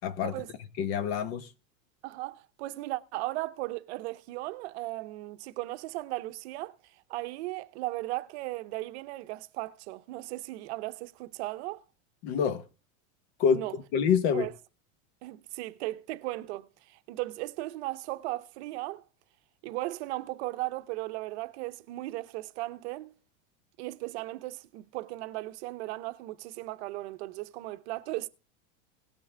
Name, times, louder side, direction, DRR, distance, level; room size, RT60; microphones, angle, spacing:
voice 1, 0.0-0.3 0.8-1.5 12.2-12.6 13.4-14.5, left 7 dB, 50° left, 1.2 m, -27 dB
voice 2, 2.0-6.8 7.1-11.8 13.5-13.7 14.3-14.5 15.2-19.0 19.6-23.1 23.8-28.3, right 19 dB, 55° right, 0.8 m, -36 dB
18.0 x 6.2 x 3.4 m
supercardioid pair, 160°, 39 cm